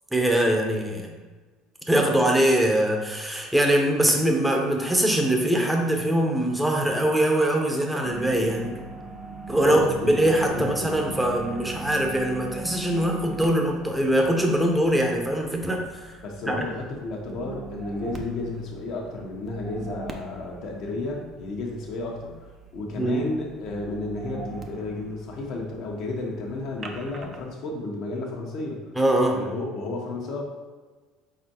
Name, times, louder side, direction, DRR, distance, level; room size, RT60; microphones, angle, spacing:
voice 1, 0.1-1.1 1.9-8.8 9.5-9.8 10.1-16.1 16.5-16.6 23.0-23.3 29.0-29.4, right 1 dB, 5° right, 1 dB, 0.8 m, -22 dB
sound 1, 8.0-27.5, right 4 dB, 40° right, 0.6 m, -40 dB
voice 2, 9.6-10.1 10.5-11.0 16.2-22.3 22.7-28.8 29.3-30.4, left 2 dB, 65° left, -1 dB, 1.1 m, -32 dB
4.4 x 4.0 x 2.9 m, 1.3 s
supercardioid pair, 80°, 0 cm